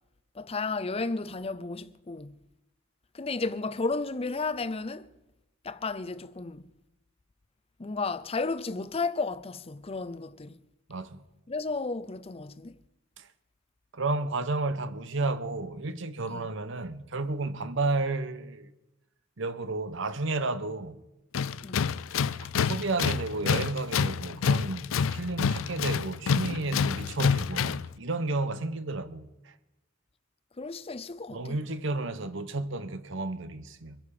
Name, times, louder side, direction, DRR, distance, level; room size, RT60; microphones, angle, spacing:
voice 1, 0.3-2.4 3.1-5.1 5.6-6.7 7.8-10.6 11.5-12.8 16.3-16.5 21.6-21.9 30.6-31.6, left 3 dB, 30° left, 0.6 m, -33 dB
voice 2, 13.9-18.7 19.4-21.0 22.4-29.3 31.3-34.0, right 2 dB, 65° right, 1.0 m, -32 dB
Tools, 21.3-27.9, left 6 dB, 85° left, 0.4 m, -28 dB
24.5 x 10.5 x 5.0 m
head